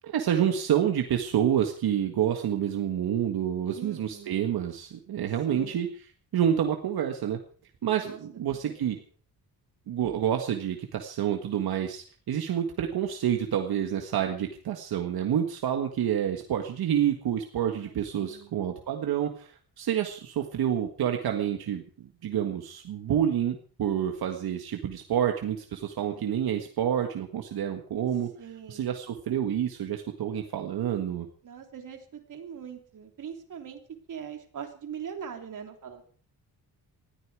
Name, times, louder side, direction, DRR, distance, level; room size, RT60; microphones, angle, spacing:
voice 1, 0.0-5.9 6.3-7.4 7.8-9.0 9.9-28.3 28.7-31.3, right 9 dB, 80° right, 3 dB, 1.8 m, -28 dB
voice 2, 3.7-4.4 5.5-5.9 8.0-8.2 8.5-9.0 17.7-18.6 26.0-26.3 28.4-28.9 31.4-33.8 34.1-36.0, right 7 dB, 55° right, 3 dB, 3.2 m, -42 dB
20.0 x 14.0 x 4.9 m, 0.44 s
wide cardioid pair, 175°, 37 cm